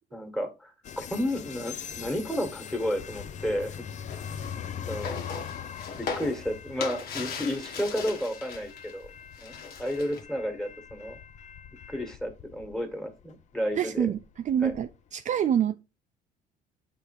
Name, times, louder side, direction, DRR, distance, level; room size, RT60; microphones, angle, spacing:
voice 1, 0.1-3.8 4.9-5.2 6.0-9.1 9.4-11.2 11.9-14.1 14.6-14.7, equal, 5° left, 1.6 m, -32 dB
sound 1, 0.8-15.0, left 8 dB, 45° left, 0.6 m, -42 dB
sound 2, 4.1-8.9 9.2-10.2, left 5 dB, 65° left, 1.5 m, -38 dB
voice 2, 13.8-14.2 14.4-15.8, right 9 dB, 45° right, 0.5 m, -26 dB
7.8 x 3.5 x 4.8 m
cardioid pair, 110°, 17 cm